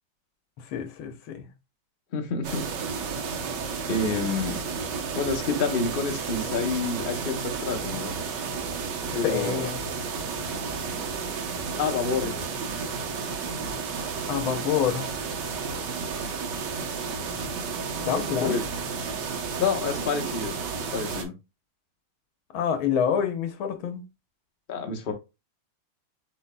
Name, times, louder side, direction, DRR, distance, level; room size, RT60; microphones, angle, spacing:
voice 1, 0.7-1.5 9.1-9.8 14.3-15.1 18.0-18.6 22.5-24.0, left 8 dB, 75° left, 1.7 m, -27 dB
voice 2, 2.1-2.7 3.9-4.6 5.1-8.2 9.1-9.7 11.8-12.4 18.1-18.6 19.6-20.6 20.9-21.3 24.7-25.1, left 4 dB, 45° left, 0.6 m, -28 dB
sound 1, 2.4-21.2, right 5 dB, 60° right, 1.4 m, -32 dB
7.3 x 3.3 x 2.2 m
omnidirectional pair, 2.3 m